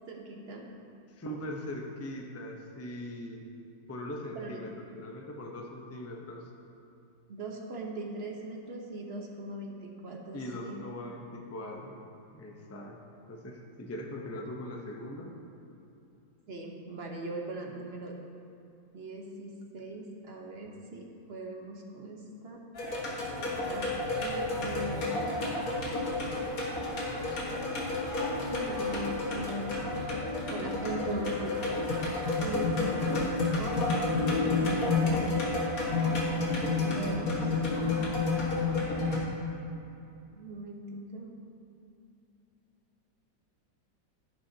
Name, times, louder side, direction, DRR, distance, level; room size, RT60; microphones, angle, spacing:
voice 1, 0.1-0.6 4.3-4.6 7.3-10.8 16.5-18.1 18.9-22.6 23.6-23.9 24.2-25.4 28.5-29.1 29.3-30.0 30.5-31.6 32.4-33.2 33.5-35.5 36.7-37.5 40.3-41.3, right 2 dB, 40° right, 0 dB, 1.1 m, -40 dB
voice 2, 1.2-3.4 3.9-6.4 10.3-12.0 12.3-13.0 13.3-15.3 30.9-31.4, left 1 dB, 20° left, 0 dB, 0.4 m, -41 dB
sound 1, 22.8-39.2, left 3 dB, 55° left, 2.0 m, -30 dB
sound 2, 31.2-35.0, left 1 dB, 10° right, 1.5 m, -49 dB
12.0 x 10.5 x 2.9 m, 2.7 s
omnidirectional pair, 1.9 m